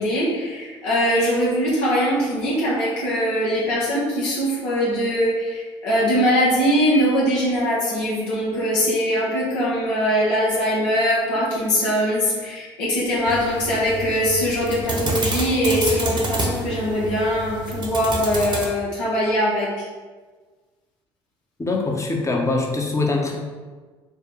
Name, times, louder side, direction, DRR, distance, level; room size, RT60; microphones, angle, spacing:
voice 1, 0.0-19.9, equal, 75° left, -6 dB, 1.0 m, -22 dB
sound 1, 13.3-18.7, right 2 dB, 35° right, 1.0 m, -28 dB
voice 2, 21.6-23.4, left 3 dB, 20° left, 0 dB, 0.9 m, -23 dB
4.7 x 2.2 x 3.2 m, 1.4 s
hypercardioid pair, 55°, 14 cm